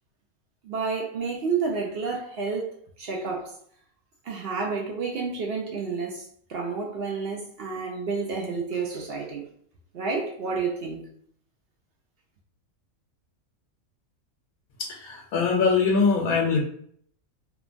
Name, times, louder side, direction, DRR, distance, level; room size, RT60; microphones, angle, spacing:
voice 1, 0.6-3.6 4.2-9.5 9.9-11.0, right 4 dB, 65° right, 0.6 m, -30 dB
voice 2, 14.8-16.6, left 5 dB, 85° left, 1.0 m, -22 dB
3.0 x 2.1 x 2.5 m
omnidirectional pair, 1.5 m